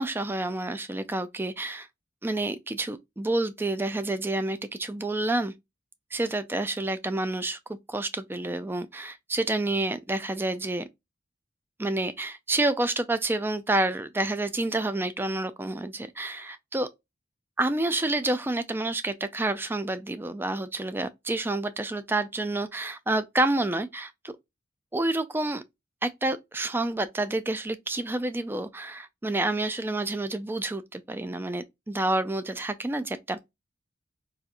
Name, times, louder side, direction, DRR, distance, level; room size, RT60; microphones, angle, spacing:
voice 1, 0.0-1.9 2.2-5.5 6.1-10.9 11.8-16.9 17.6-24.1 24.9-25.6 26.0-33.4, right 2 dB, 10° right, 0.3 m, -29 dB
4.1 x 2.5 x 2.4 m
head